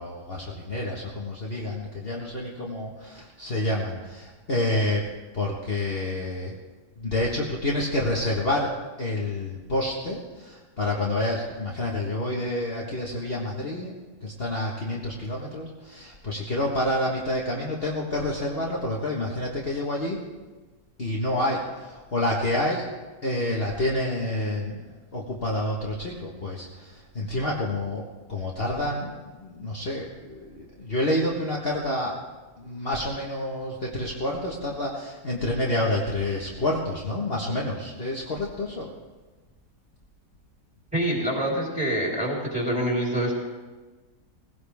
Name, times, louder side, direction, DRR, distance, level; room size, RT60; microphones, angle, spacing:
voice 1, 0.0-5.0 5.3-6.6 7.0-13.9 14.2-20.2 21.0-22.9 23.2-24.8 25.1-32.1 32.6-38.9, left 1 dB, 40° left, -3 dB, 1.6 m, -28 dB
voice 2, 40.9-43.3, right 1 dB, 5° right, -4 dB, 3.9 m, -26 dB
19.0 x 16.5 x 3.5 m, 1.3 s
omnidirectional pair, 1.7 m